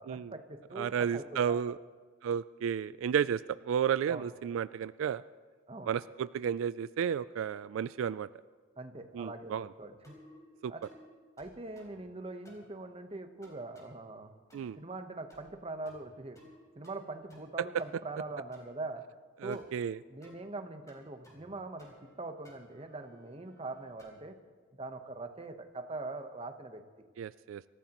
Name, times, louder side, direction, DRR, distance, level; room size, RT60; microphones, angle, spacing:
voice 1, 0.0-1.8 4.1-4.2 5.7-5.9 8.8-10.1 10.7-10.8 11.4-14.3 14.8-16.4 16.7-19.0 19.4-19.6 20.1-24.4 24.7-27.0, right 2 dB, 30° right, 7 dB, 1.0 m, -42 dB
voice 2, 0.8-1.8 2.2-5.2 5.9-8.3 9.1-9.7 10.6-10.7 14.5-14.8 19.4-20.0 27.2-27.6, right 8 dB, 80° right, 16 dB, 0.3 m, -32 dB
sound 1, 10.0-10.4 10.8-11.1 11.4-12.0 12.4-12.7 13.4-13.9 14.5-14.8 15.3-15.6 15.8-16.6 16.8-17.5 17.8-18.7 19.5-19.7 20.2-20.4 20.9-21.5 21.8-22.2 22.4-24.2, left 1 dB, 15° left, 4.1 m, -58 dB
25.5 x 14.5 x 3.0 m, 1.6 s
head